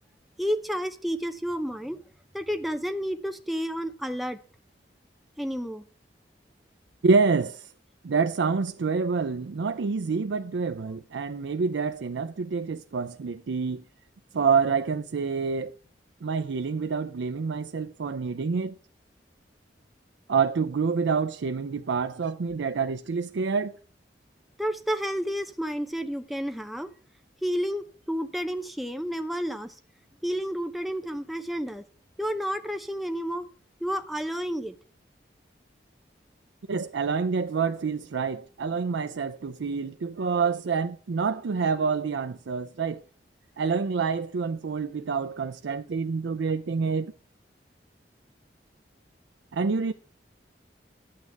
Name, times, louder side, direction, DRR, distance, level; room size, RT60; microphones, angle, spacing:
voice 1, 0.4-2.0 2.3-4.4 5.4-5.8 24.6-26.9 27.4-29.8 30.2-31.8 32.2-33.5 33.8-34.7, equal, ahead, 0.6 m, -30 dB
voice 2, 7.0-7.7 8.0-13.8 14.3-15.7 16.2-18.7 20.3-23.7 36.7-43.0 43.6-47.1 49.5-49.9, right 5 dB, 90° right, 0.5 m, -27 dB
10.5 x 8.6 x 3.4 m
head